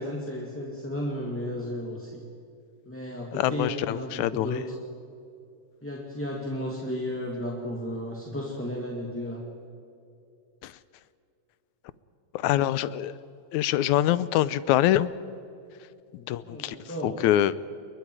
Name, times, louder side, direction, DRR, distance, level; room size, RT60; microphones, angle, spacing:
voice 1, 0.0-2.2 2.8-4.6 5.8-9.4 16.4-17.2, equal, 5° left, -2 dB, 1.9 m, -33 dB
voice 2, 3.4-4.6 10.6-10.7 12.3-13.2 13.5-15.1 16.1-16.8 17.0-17.6, left 13 dB, 80° left, 17 dB, 2.1 m, -24 dB
29.0 x 22.5 x 4.9 m, 2.6 s
omnidirectional pair, 3.4 m